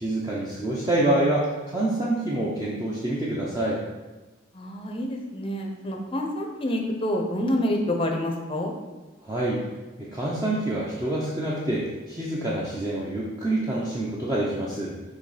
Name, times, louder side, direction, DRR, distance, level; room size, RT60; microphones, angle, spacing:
voice 1, 0.0-3.8 9.2-9.6 10.0-15.0, right 1 dB, 15° right, -7 dB, 0.8 m, -26 dB
voice 2, 4.5-8.7, left 1 dB, 25° left, 2 dB, 0.7 m, -27 dB
6.6 x 3.0 x 5.0 m, 1.2 s
head